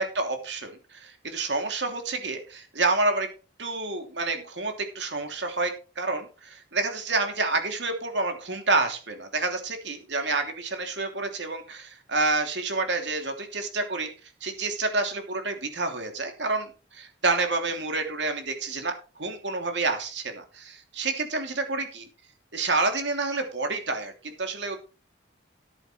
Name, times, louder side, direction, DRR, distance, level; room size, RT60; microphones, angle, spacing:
voice 1, 0.0-3.3 3.6-14.1 14.4-22.0 22.5-24.8, right 3 dB, 65° right, 5 dB, 3.0 m, -28 dB
13.5 x 10.5 x 3.3 m, 0.34 s
head